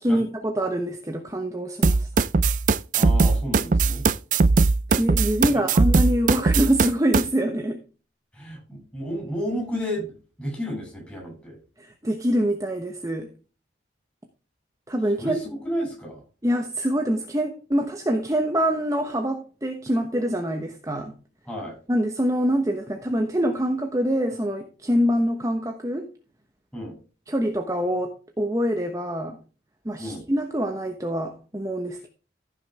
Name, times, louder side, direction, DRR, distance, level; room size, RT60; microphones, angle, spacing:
voice 1, 0.0-2.1 4.9-7.8 11.8-13.3 14.9-15.4 16.4-21.1 21.9-26.1 27.3-29.4 29.8-32.1, equal, 15° right, 1.0 m, -25 dB
sound 1, 1.8-7.2, right 4 dB, 40° right, 0.4 m, -19 dB
voice 2, 2.9-4.0 5.5-5.6 8.3-11.6 15.2-16.2 21.5-21.8 26.7-27.0 30.0-30.2, equal, 5° left, 6.6 m, -32 dB
15.0 x 6.5 x 3.5 m
head